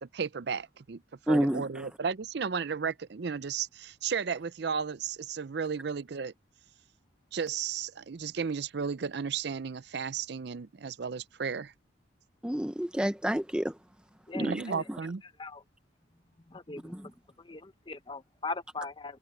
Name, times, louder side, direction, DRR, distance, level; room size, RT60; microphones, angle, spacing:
voice 1, 0.0-6.3 7.3-11.7 14.4-15.2, right 6 dB, 55° right, 0.5 m, -34 dB
voice 2, 1.3-1.9 12.4-13.7 14.3-14.6 16.9-17.0, equal, 5° right, 0.6 m, -29 dB
voice 3, 14.3-14.8 15.4-15.6 16.5-17.1 17.4-19.2, left 3 dB, 25° left, 0.8 m, -40 dB
head